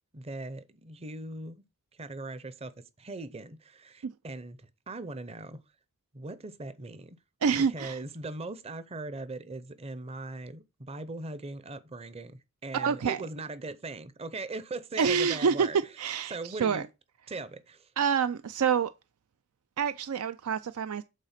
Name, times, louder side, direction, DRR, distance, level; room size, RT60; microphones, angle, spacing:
voice 1, 0.1-1.6 1.9-2.7 3.0-5.6 6.1-7.2 7.5-16.9 17.3-17.9, right 2 dB, 30° right, 0.6 m, -40 dB
voice 2, 7.4-8.0 12.7-13.2 15.0-15.7 16.0-16.8 18.0-18.9 19.8-21.0, right 6 dB, 85° right, 0.4 m, -27 dB
8.3 x 4.0 x 5.8 m
head